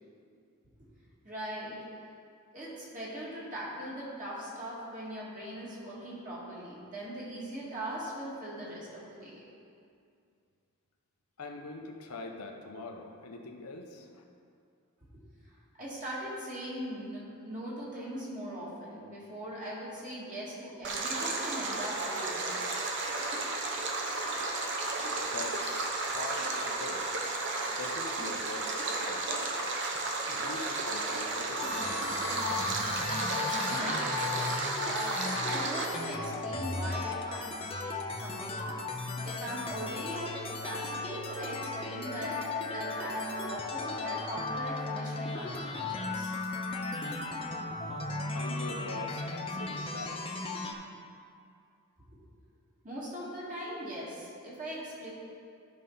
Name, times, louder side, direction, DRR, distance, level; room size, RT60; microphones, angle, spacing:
voice 1, 1.2-1.8 2.5-9.4 15.8-22.9 33.5-37.5 37.8-38.8 39.2-42.4 42.7-46.4 52.8-55.1, equal, 35° right, -7 dB, 2.0 m, -40 dB
voice 2, 11.4-14.2 25.2-27.1 27.7-29.5 30.3-31.8 48.3-50.2, left 2 dB, 85° left, 3 dB, 0.9 m, -43 dB
Stream, 20.8-35.9, right 3 dB, 50° right, 0.9 m, -33 dB
sound 1, 31.6-50.7, left 3 dB, 25° left, 0.6 m, -36 dB
12.0 x 5.4 x 3.9 m, 2.4 s
head